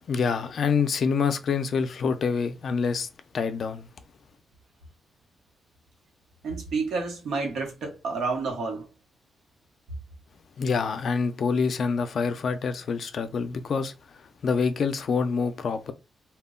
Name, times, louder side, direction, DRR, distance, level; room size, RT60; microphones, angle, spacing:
voice 1, 0.1-3.1 3.3-3.9 10.6-15.9, left 5 dB, 55° left, 0.4 m, -26 dB
voice 2, 6.4-8.9, right 4 dB, 90° right, 0.9 m, -30 dB
2.2 x 2.0 x 3.6 m
wide cardioid pair, 145°, 0 cm